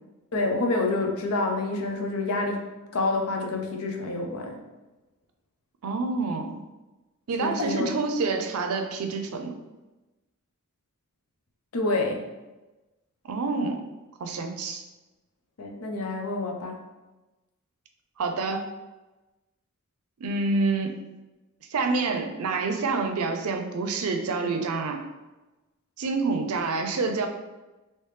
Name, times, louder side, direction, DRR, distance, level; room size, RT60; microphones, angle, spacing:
voice 1, 0.3-2.7 2.9-4.6 7.4-7.9 11.7-12.2 15.6-16.8, left 2 dB, 85° left, 2 dB, 0.6 m, -27 dB
voice 2, 5.8-6.6 7.3-9.6 13.2-13.8 14.2-14.8 18.2-18.7 20.2-20.9 21.7-25.0 26.0-27.3, right 3 dB, 90° right, 5 dB, 0.5 m, -27 dB
3.2 x 2.9 x 3.2 m, 1.1 s
head